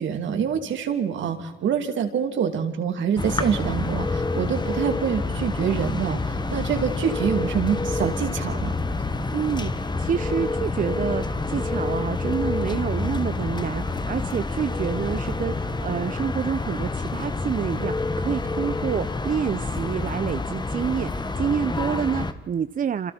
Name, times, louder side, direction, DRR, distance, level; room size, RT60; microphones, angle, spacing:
voice 1, 0.0-8.7, right 7 dB, 70° right, 6 dB, 2.9 m, -26 dB
sound 1, 3.2-22.3, left 3 dB, 20° left, 1.4 m, -28 dB
voice 2, 9.3-23.1, right 8 dB, 45° right, 13 dB, 0.6 m, -28 dB
28.0 x 27.0 x 4.4 m, 1.1 s
cardioid pair, 90°, 20 cm